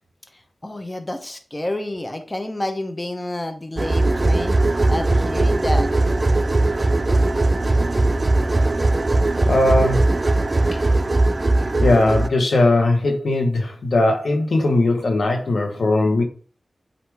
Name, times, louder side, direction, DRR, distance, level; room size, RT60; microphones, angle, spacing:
voice 1, 0.6-4.6 4.9-5.9, left 1 dB, 25° left, 0.9 m, -29 dB
sound 1, 3.8-12.3, right 2 dB, 40° right, 0.5 m, -19 dB
voice 2, 9.4-10.1 11.8-16.2, left 2 dB, 80° left, 1.4 m, -19 dB
8.3 x 2.9 x 4.8 m
cardioid pair, 50°, 0 cm